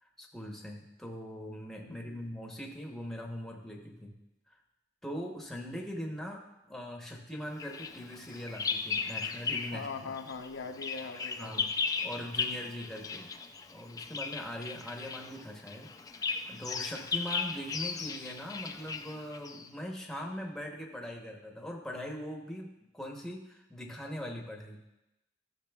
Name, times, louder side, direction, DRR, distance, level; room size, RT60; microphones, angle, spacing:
voice 1, 0.0-4.2 4.5-4.6 5.0-10.1 11.4-11.8 12.0-13.3 13.7-15.9 16.2-24.8, equal, ahead, 0 dB, 0.8 m, -41 dB
voice 2, 1.8-2.2 9.7-11.7, left 4 dB, 75° left, 5 dB, 0.6 m, -41 dB
Bird vocalization bird call bird song, 7.6-9.9 10.2-19.7, left 5 dB, 20° left, 0.3 m, -36 dB
14.0 x 6.1 x 2.3 m, 0.93 s
head